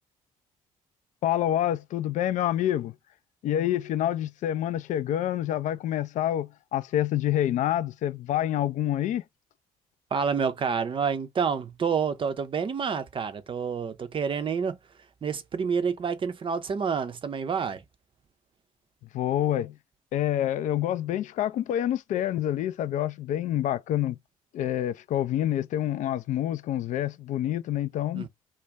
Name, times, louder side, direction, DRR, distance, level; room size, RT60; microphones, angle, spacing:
voice 1, 1.2-2.9 3.4-9.2 19.1-19.7 20.1-24.2 24.5-28.3, left 12 dB, 45° left, 0.4 m, -27 dB
voice 2, 10.1-14.8 15.2-17.8 28.1-28.3, right 6 dB, 30° right, 0.5 m, -28 dB
2.5 x 2.2 x 3.2 m
figure-of-eight pair, 50°, 18 cm